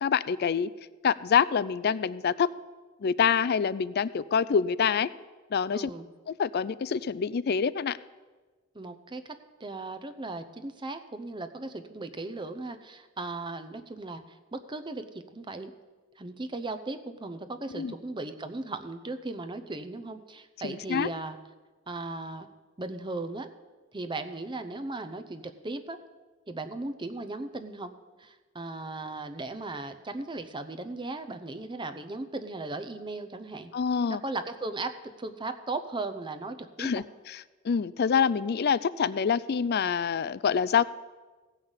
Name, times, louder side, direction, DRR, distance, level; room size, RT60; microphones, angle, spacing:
voice 1, 0.0-0.7 1.0-2.5 3.0-5.1 5.5-5.9 6.3-8.0 17.7-17.9 20.6-21.1 33.7-34.2 36.8-40.8, left 6 dB, 50° left, 18 dB, 0.4 m, -26 dB
voice 2, 5.7-6.1 8.7-15.7 16.2-21.4 21.9-22.5 22.8-23.5 23.9-26.0 26.5-27.9 28.2-33.7 34.1-37.0, right 2 dB, 20° right, 9 dB, 0.7 m, -37 dB
16.0 x 5.7 x 8.0 m, 1.3 s
head